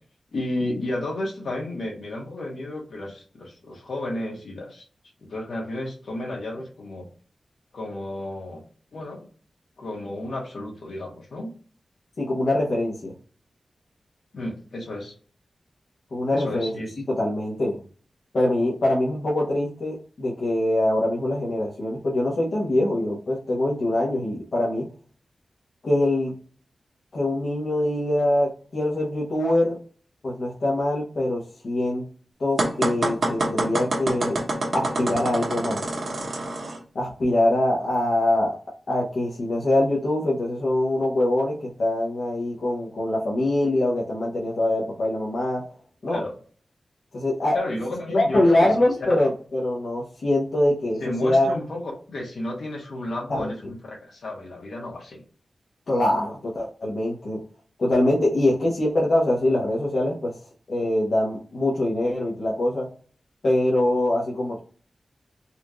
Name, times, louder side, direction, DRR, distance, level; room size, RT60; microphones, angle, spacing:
voice 1, 0.3-4.8 5.2-7.1 7.7-8.6 8.9-9.3 9.8-11.5 14.3-15.1 16.3-16.9 46.1-46.3 47.5-48.7 49.1-49.2 51.0-51.8 52.1-55.2, left 1 dB, 75° left, -2 dB, 1.6 m, -32 dB
voice 2, 12.2-13.1 16.1-16.7 17.1-17.8 18.3-24.9 25.8-26.3 27.1-29.8 30.2-32.0 32.4-34.4 34.7-35.8 36.9-38.6 38.9-45.6 46.0-46.2 47.1-47.6 48.1-51.5 53.3-53.5 55.9-57.4 57.8-60.3 60.7-62.9 63.4-64.6, left 1 dB, 55° left, -6 dB, 1.0 m, -23 dB
sound 1, 32.6-36.8, right 2 dB, 55° right, 1.0 m, -26 dB
4.2 x 2.6 x 3.0 m, 0.41 s
wide cardioid pair, 155°, 0 cm